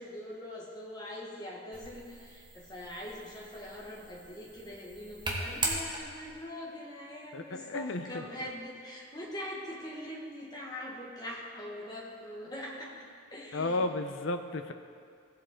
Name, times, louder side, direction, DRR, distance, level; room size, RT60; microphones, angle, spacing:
voice 1, 0.0-13.8, left 1 dB, 20° left, -3 dB, 1.5 m, -43 dB
sound 1, 1.7-6.4, right 2 dB, 20° right, 1.2 m, -39 dB
voice 2, 7.3-8.2 13.5-14.7, left 2 dB, 70° left, 8 dB, 0.6 m, -33 dB
15.5 x 7.7 x 3.7 m, 2.2 s
head